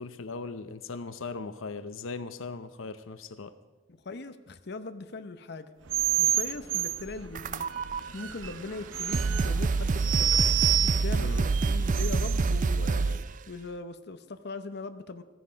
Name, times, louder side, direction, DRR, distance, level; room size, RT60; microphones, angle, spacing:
voice 1, 0.0-3.5 11.1-11.5, left 4 dB, 85° left, 12 dB, 0.7 m, -39 dB
voice 2, 3.9-5.7 6.2-7.7 8.1-10.4 10.8-15.2, left 3 dB, 55° left, 10 dB, 0.8 m, -40 dB
sound 1, 5.9-12.5, right 10 dB, 75° right, 0.8 m, -29 dB
sound 2, 7.3-8.0 8.7-8.8 9.1-13.3, right 4 dB, 40° right, 0.4 m, -27 dB
15.5 x 14.0 x 5.1 m, 1.2 s
head